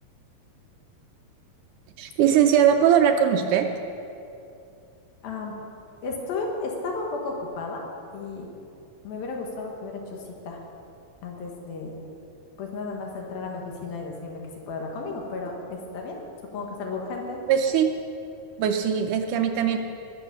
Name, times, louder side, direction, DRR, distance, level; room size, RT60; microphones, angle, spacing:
voice 1, 2.0-3.7 17.5-17.9 18.6-19.8, right 9 dB, 75° right, 5 dB, 2.0 m, -20 dB
voice 2, 5.2-5.6 6.0-7.8 8.1-8.5 9.0-10.6 11.2-12.0 12.6-16.2 16.5-17.4, left 3 dB, 80° left, 0 dB, 3.5 m, -33 dB
19.5 x 7.1 x 6.9 m, 2.7 s
omnidirectional pair, 4.2 m